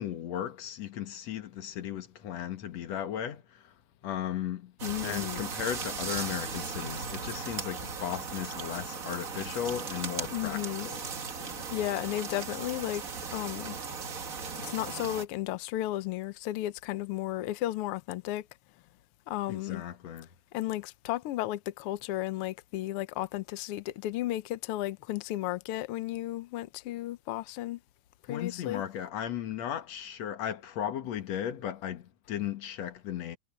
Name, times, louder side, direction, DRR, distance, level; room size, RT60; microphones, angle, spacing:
voice 1, 0.0-3.7 4.0-4.7 5.0-11.0 11.4-11.7 19.5-20.3 28.3-33.4, left 10 dB, 60° left, 2.5 m, -36 dB
voice 2, 4.8-5.5 10.3-10.9 11.7-13.0 13.3-13.8 14.6-18.5 19.3-19.8 20.5-27.8 28.3-28.8, left 15 dB, 90° left, 1.2 m, -34 dB
sound 1, 4.8-15.2, right 5 dB, 45° right, 1.1 m, -37 dB
omnidirectional pair, 3.6 m